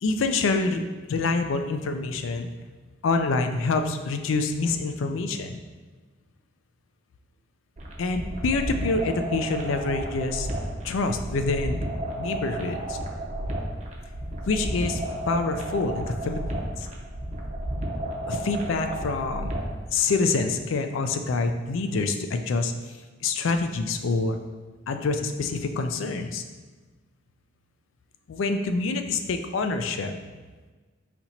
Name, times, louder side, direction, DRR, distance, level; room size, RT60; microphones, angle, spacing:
voice 1, 0.0-2.5 3.0-5.6 8.0-10.5 10.8-11.8 12.2-13.0 14.5-16.9 18.3-19.5 19.9-24.4 24.9-26.4 28.3-30.2, left 3 dB, 65° left, 7 dB, 0.4 m, -26 dB
sound 1, 7.8-19.8, right 1 dB, 35° right, 0.6 m, -32 dB
4.1 x 2.9 x 4.2 m, 1.3 s
head